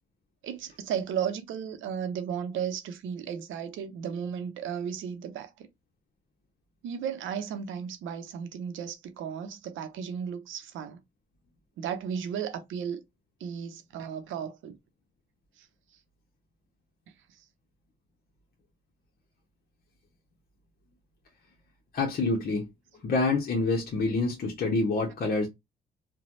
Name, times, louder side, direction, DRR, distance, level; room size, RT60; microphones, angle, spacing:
voice 1, 0.4-5.7 6.8-11.0 11.8-13.0 13.4-14.8, right 8 dB, 80° right, 0.7 m, -34 dB
voice 2, 21.9-22.7 23.0-25.5, left 3 dB, 50° left, 0.8 m, -27 dB
3.1 x 2.2 x 2.6 m
cardioid pair, 90°, 20 cm